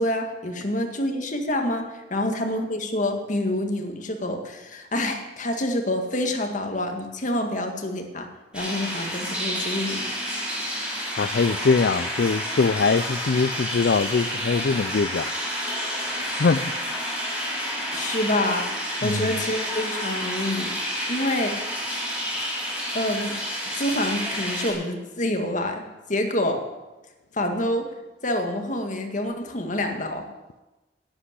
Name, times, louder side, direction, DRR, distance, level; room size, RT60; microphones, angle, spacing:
voice 1, 0.0-8.3 8.5-10.1 17.9-18.7 19.0-20.8 21.1-21.6 22.9-23.4 23.8-26.6 27.3-27.9 28.2-30.2, left 1 dB, 45° left, 4 dB, 1.9 m, -27 dB
sound 1, 8.5-24.7, equal, 5° right, 5.7 m, -30 dB
voice 2, 11.1-15.3 16.1-16.7 19.0-19.4, left 4 dB, 65° left, 12 dB, 0.4 m, -23 dB
11.5 x 8.5 x 9.9 m, 1.1 s
head